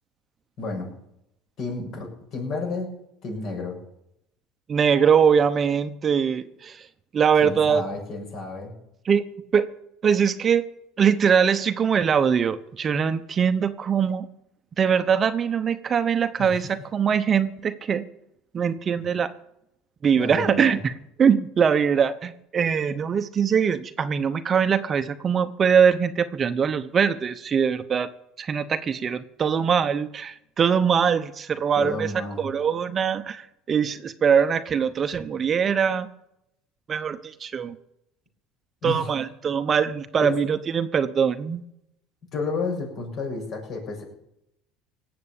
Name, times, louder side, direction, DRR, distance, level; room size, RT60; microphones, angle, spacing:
voice 1, 0.6-0.9 1.6-2.9 3.2-3.8 7.4-8.7 16.4-16.7 20.2-20.8 31.7-32.5 38.8-39.1 40.2-40.4 42.3-44.0, left 3 dB, 55° left, 2 dB, 7.0 m, -31 dB
voice 2, 4.7-6.8 7.1-7.8 9.0-9.7 10.0-10.6 11.0-14.3 14.8-18.0 18.5-19.3 20.0-20.9 21.2-28.1 28.4-32.1 32.4-36.1 36.9-37.8 38.8-41.6, right 7 dB, 35° right, 10 dB, 0.9 m, -22 dB
18.0 x 7.9 x 8.7 m, 0.80 s
supercardioid pair, 110°, 0 cm